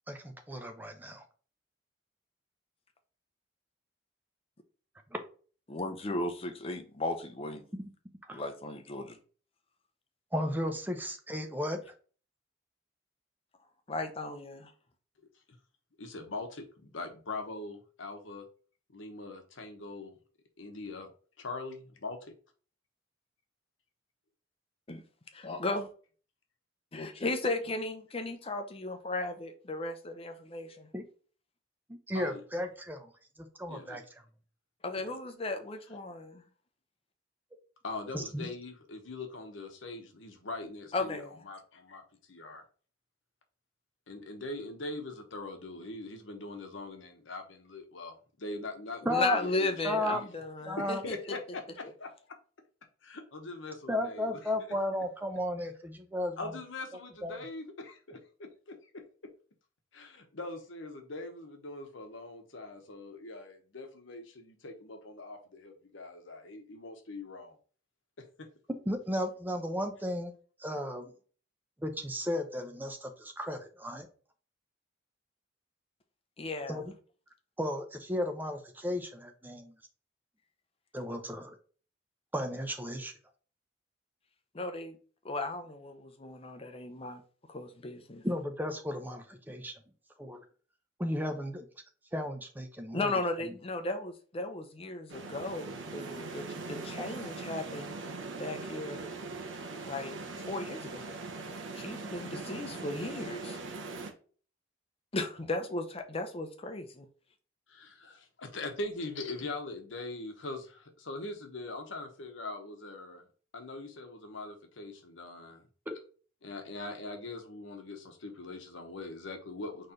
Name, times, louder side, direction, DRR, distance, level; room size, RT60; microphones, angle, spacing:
voice 1, 0.1-1.2 5.1-5.2 8.3-8.4 10.3-11.8 30.9-31.0 31.9-33.1 33.4-34.0 38.1-38.5 49.0-49.4 49.8-50.2 50.7-51.0 53.9-56.6 57.2-57.4 68.9-70.3 70.6-71.1 71.8-74.1 76.7-76.9 77.6-79.7 80.9-81.6 82.3-83.1 88.2-89.7 90.2-90.4 91.0-91.7 92.1-93.1 97.0-97.1 115.9-116.0, left 1 dB, 10° right, 0.6 m, -34 dB
voice 2, 5.7-7.7 8.3-9.2 13.9-14.7 24.9-25.0 25.3-25.9 26.9-30.9 34.8-36.4 40.9-41.3 49.0-51.1 76.4-76.8 84.5-85.0 85.2-87.2 87.5-88.2 92.9-97.9 98.4-99.1 99.8-100.2 100.5-101.1 101.7-103.6 105.1-107.1, left 2 dB, 30° left, 0.6 m, -36 dB
voice 3, 16.0-18.5 18.9-20.2 20.6-21.1 21.4-22.4 32.1-32.4 33.7-34.0 35.0-35.1 37.8-42.0 42.3-42.6 44.1-50.3 50.8-52.4 53.0-54.4 56.4-59.3 59.9-67.5 68.2-68.5 107.7-113.3 113.5-115.6 116.4-119.9, left 2 dB, 90° left, 1.0 m, -42 dB
sound 1, 95.1-104.1, right 3 dB, 80° right, 0.9 m, -41 dB
4.3 x 3.2 x 3.8 m
head